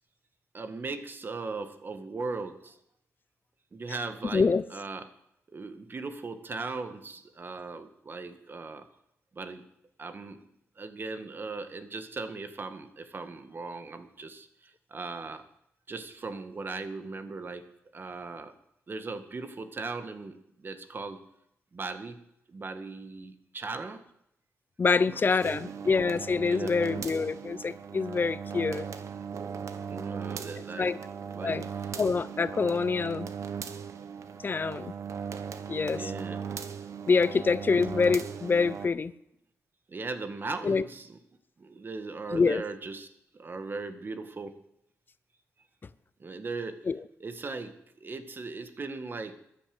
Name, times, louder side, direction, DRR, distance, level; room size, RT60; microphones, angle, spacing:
voice 1, 0.5-2.8 3.7-5.0 5.5-8.9 9.3-9.6 10.0-10.4 10.8-15.4 15.9-17.7 17.9-18.5 18.9-21.2 21.7-22.2 22.5-24.0 25.0-25.2 25.5-25.6 26.4-26.7 29.9-31.0 31.2-31.6 35.9-36.5 37.3-37.4 39.9-41.2 41.6-44.6 46.2-46.8 47.2-47.7 48.0-49.3, right 3 dB, 40° right, 9 dB, 1.7 m, -38 dB
voice 2, 4.3-4.6 24.8-28.9 30.8-31.0 31.4-31.7 32.0-33.3 34.4-34.9 35.7-36.1 37.1-39.1 40.6-40.8 42.3-42.6 46.9-47.0, left 4 dB, 40° left, 16 dB, 0.6 m, -26 dB
sound 1, 25.4-38.9, right 7 dB, 75° right, 1.1 m, -38 dB
13.0 x 11.0 x 7.8 m, 0.78 s
cardioid pair, 85°, 5 cm